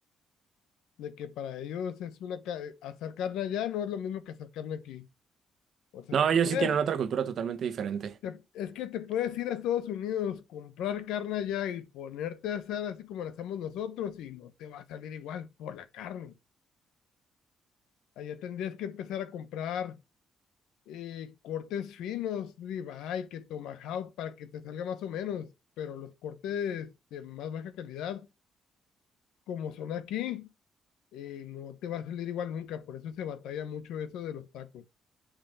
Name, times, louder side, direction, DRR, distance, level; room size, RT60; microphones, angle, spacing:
voice 1, 1.0-5.1 5.9-6.8 8.2-16.3 18.2-20.0 20.9-25.5 25.8-28.3 29.5-30.5 31.1-34.8, left 9 dB, 90° left, 1.0 m, -36 dB
voice 2, 6.1-8.1, right 7 dB, 65° right, 1.1 m, -27 dB
8.9 x 5.1 x 6.6 m
cardioid pair, 90°, 0 cm